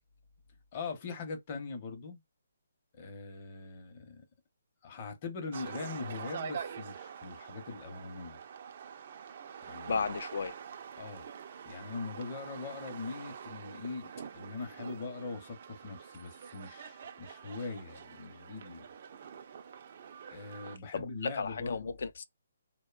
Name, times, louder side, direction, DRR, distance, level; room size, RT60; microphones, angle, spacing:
voice 1, 0.7-2.2 2.9-4.2 4.8-8.4 9.7-10.0 11.0-11.3 11.7-18.8 20.3-21.9, left 4 dB, 30° left, 0.7 m, -41 dB
sound 1, 5.5-20.8, right 7 dB, 45° right, 0.4 m, -46 dB
voice 2, 9.9-10.5 20.9-22.2, left 5 dB, 60° left, 0.4 m, -34 dB
2.6 x 2.1 x 2.3 m
hypercardioid pair, 160°, 0 cm